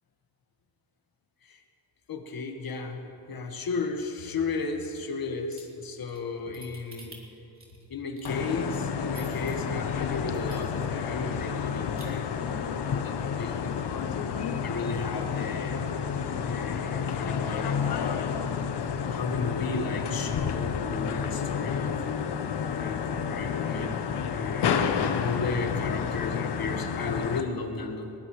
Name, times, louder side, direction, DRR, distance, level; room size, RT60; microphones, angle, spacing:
voice 1, 2.1-7.3 7.9-14.1 14.6-15.8 16.4-18.5 19.1-22.0 22.6-28.1, left 4 dB, 55° left, 4 dB, 1.7 m, -34 dB
sound 1, 5.5-9.5 10.0-10.1 10.3-11.0 11.3-11.4 11.7-12.0, right 3 dB, 30° right, 3.3 m, -49 dB
sound 2, 8.2-27.4, left 7 dB, 70° left, 1.0 m, -30 dB
20.5 x 19.0 x 3.3 m, 2.9 s
cardioid pair, 105°, 43 cm